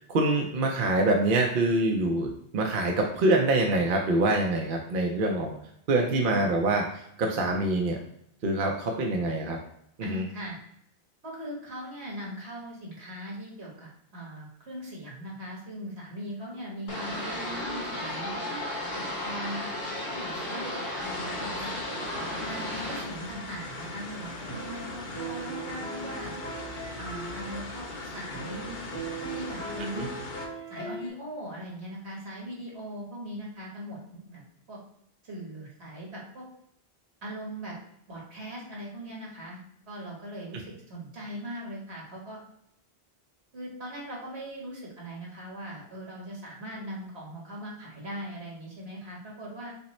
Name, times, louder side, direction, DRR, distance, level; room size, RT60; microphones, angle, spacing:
voice 1, 0.0-5.5 5.9-8.0 8.4-9.6 10.0-10.2 29.9-30.1, right 2 dB, 55° right, 2 dB, 0.8 m, -25 dB
voice 2, 10.0-10.6 11.2-18.5 19.2-19.7 20.1-21.7 22.4-26.3 27.0-28.8 29.3-29.9 30.7-34.4 34.7-34.8 35.2-36.4 37.2-37.8 38.1-39.6 39.9-42.4 43.5-49.7, equal, 75° right, -4 dB, 1.8 m, -40 dB
sound 1, 16.9-23.0, left 1 dB, 85° left, 1.7 m, -34 dB
sound 2, 21.0-30.5, left 2 dB, 50° left, 0.8 m, -40 dB
sound 3, 24.5-27.7 28.3-31.1, right 2 dB, 15° left, 0.5 m, -39 dB
5.4 x 2.1 x 4.1 m, 0.73 s
omnidirectional pair, 1.1 m